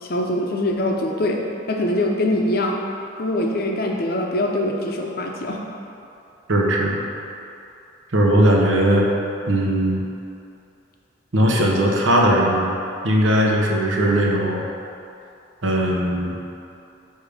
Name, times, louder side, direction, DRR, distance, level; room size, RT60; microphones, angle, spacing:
voice 1, 0.0-2.8 3.2-5.6, left 1 dB, 50° left, 1 dB, 0.6 m, -23 dB
voice 2, 6.5-7.0 8.1-9.1 9.5-10.0 11.3-12.7 13.0-14.7 15.6-16.3, right 1 dB, 85° right, -1 dB, 0.9 m, -18 dB
8.3 x 2.8 x 5.1 m, 2.6 s
head